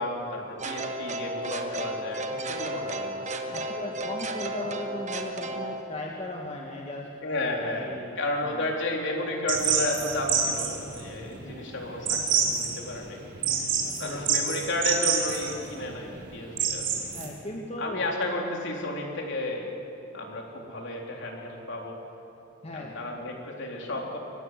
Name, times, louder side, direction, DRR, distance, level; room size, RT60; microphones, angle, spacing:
voice 1, 0.0-3.1 3.5-3.6 7.2-13.2 14.0-16.9 17.8-19.7 20.1-22.0 22.7-24.2, left 1 dB, 60° left, 0 dB, 3.8 m, -32 dB
sound 1, 0.6-5.8, right 1 dB, 35° right, 1.4 m, -33 dB
voice 2, 3.5-7.1 7.4-7.5 7.8-8.7 11.4-11.7 13.4-14.3 17.1-18.1 22.6-23.3, left 1 dB, 30° left, -1 dB, 1.9 m, -38 dB
sound 2, 9.5-17.3, right 6 dB, 60° right, 3.8 m, -28 dB
23.5 x 19.5 x 7.7 m, 2.9 s
head